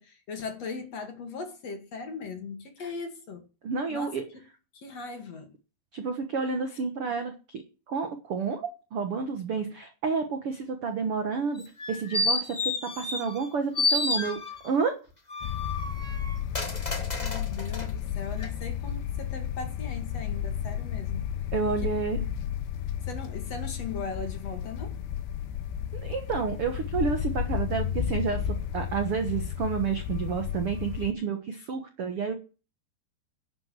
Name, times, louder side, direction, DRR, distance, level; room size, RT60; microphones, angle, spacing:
voice 1, 0.0-3.4 3.9-4.2 4.7-5.5 17.2-21.3 21.8-21.9 23.0-25.0, left 4 dB, 45° left, 2.8 m, -39 dB
voice 2, 3.6-4.2 5.9-7.6 7.9-11.6 11.9-14.9 21.5-22.3 25.9-32.3, right 5 dB, 75° right, 1.3 m, -30 dB
sound 1, 11.6-13.5 13.7-14.8 15.3-17.9 18.4-18.5, left 2 dB, 20° left, 1.2 m, -30 dB
sound 2, 15.4-31.1, left 9 dB, 80° left, 3.1 m, -32 dB
11.5 x 8.8 x 7.6 m
omnidirectional pair, 4.7 m